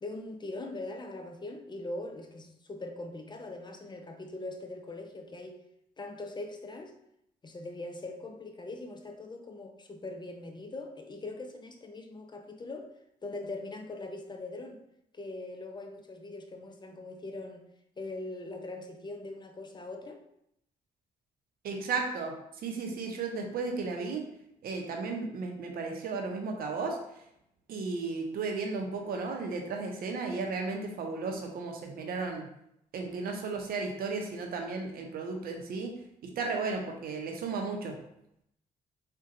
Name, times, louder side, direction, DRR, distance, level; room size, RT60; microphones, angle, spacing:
voice 1, 0.0-5.6 6.0-6.9 7.4-12.9 13.2-14.8 15.1-17.7 18.0-20.2, left 2 dB, 30° left, 4 dB, 0.5 m, -41 dB
voice 2, 21.6-22.3 22.6-24.2 24.6-27.0 27.7-32.4 32.9-35.9 36.2-38.0, right 4 dB, 70° right, 2 dB, 0.6 m, -34 dB
3.8 x 2.2 x 2.5 m, 0.77 s
supercardioid pair, 60°, 16 cm